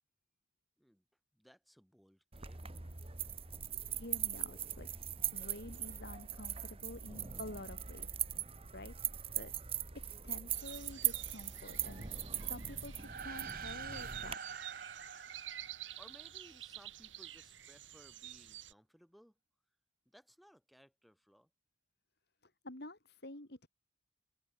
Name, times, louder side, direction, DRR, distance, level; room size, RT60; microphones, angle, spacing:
voice 1, 1.3-2.7 16.0-19.4 20.0-21.5, equal, ahead, 6.3 m, -62 dB
sound 1, 2.3-14.3, right 9 dB, 30° right, 1.4 m, -40 dB
voice 2, 3.9-4.9 5.3-8.1 8.7-9.0 9.3-9.5 9.9-12.1 12.4-14.6 22.4-23.7, left 1 dB, 60° left, 3.8 m, -49 dB
sound 2, 10.5-18.7, right 12 dB, 85° right, 5.6 m, -50 dB
sound 3, 12.9-16.6, right 6 dB, 50° right, 1.6 m, -47 dB
open air
head